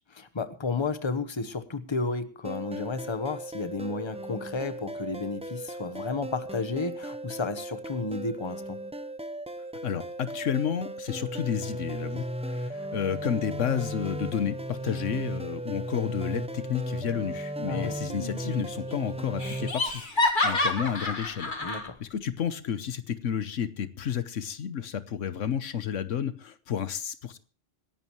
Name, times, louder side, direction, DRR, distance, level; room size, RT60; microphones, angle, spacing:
voice 1, 0.1-8.8 17.6-17.9 21.6-22.0, left 4 dB, 25° left, 10 dB, 1.1 m, -32 dB
sound 1, 2.4-19.7, right 1 dB, 5° right, 0.5 m, -36 dB
voice 2, 9.8-21.5 22.0-27.4, left 8 dB, 80° left, 12 dB, 1.3 m, -31 dB
Laughter, 18.1-18.6 18.9-19.0 19.4-21.9, left 2 dB, 40° left, 2.1 m, -28 dB
26.0 x 11.0 x 3.1 m, 0.36 s
omnidirectional pair, 1.3 m